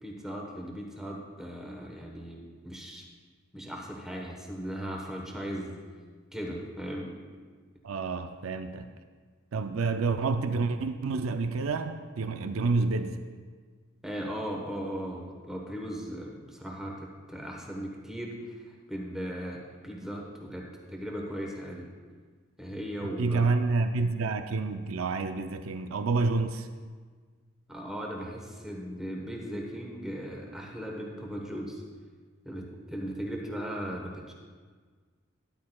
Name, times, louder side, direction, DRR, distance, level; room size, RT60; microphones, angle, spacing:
voice 1, 0.0-3.0 3.5-5.8 6.3-7.2 14.0-21.9 22.6-23.5 27.7-31.8 32.4-34.3, equal, 5° right, -1 dB, 1.0 m, -38 dB
voice 2, 7.8-8.9 9.5-13.2 23.0-26.7, right 3 dB, 85° right, 9 dB, 0.4 m, -29 dB
13.0 x 10.5 x 2.3 m, 1.5 s
head